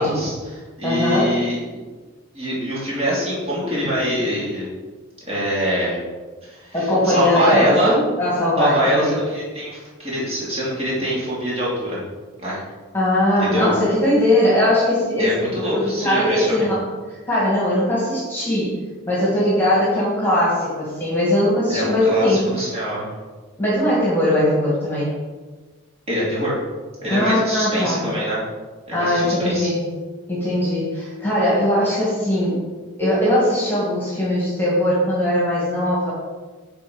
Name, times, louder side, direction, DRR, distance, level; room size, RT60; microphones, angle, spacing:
voice 1, 0.0-1.8 2.3-4.7 5.3-6.0 6.4-8.0 8.6-12.0 12.4-12.6 13.4-13.7 15.2-16.7 21.7-23.1 26.1-26.6 27.0-28.4 28.9-29.7, equal, 30° right, -7 dB, 2.8 m, -24 dB
voice 2, 0.8-1.3 6.7-9.1 12.9-15.3 15.6-16.8 17.3-18.8 19.1-22.5 23.6-25.2 27.1-28.0 28.9-29.9 30.3-32.6 33.0-36.1, left 1 dB, 10° left, -7 dB, 2.2 m, -20 dB
9.1 x 4.2 x 5.3 m, 1.3 s
head